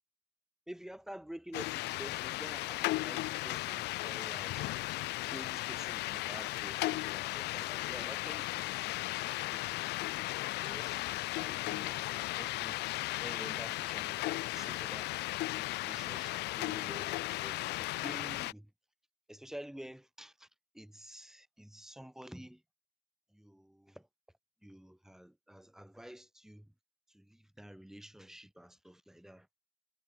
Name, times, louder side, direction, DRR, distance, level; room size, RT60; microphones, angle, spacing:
voice 1, 0.7-8.8 9.5-9.8 10.6-12.8 13.2-15.1 15.6-18.7 19.3-20.5 20.7-22.6 23.3-24.1 24.6-26.7 27.1-29.5, equal, 5° right, 6.5 m, -50 dB
sound 1, 1.5-18.5, left 19 dB, 85° left, 1.2 m, -36 dB
cardioid pair, 110°, 17 cm